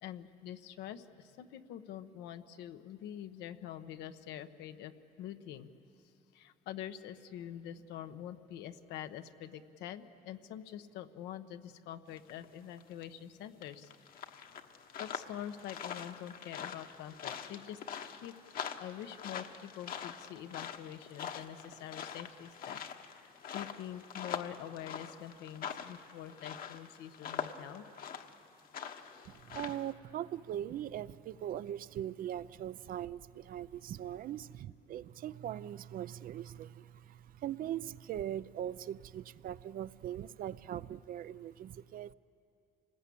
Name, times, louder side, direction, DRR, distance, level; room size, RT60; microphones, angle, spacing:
voice 1, 0.0-4.9 5.2-5.7 6.3-13.9 15.0-18.3 18.8-22.8 23.1-27.8, left 10 dB, 90° left, 8 dB, 1.0 m, -45 dB
sound 1, 12.2-12.5 12.8-13.0 13.6-29.9, left 8 dB, 60° left, 1.3 m, -44 dB
voice 2, 29.3-42.1, right 11 dB, 55° right, 16 dB, 0.5 m, -41 dB
28.0 x 20.0 x 8.5 m, 2.6 s
cardioid pair, 110°, 17 cm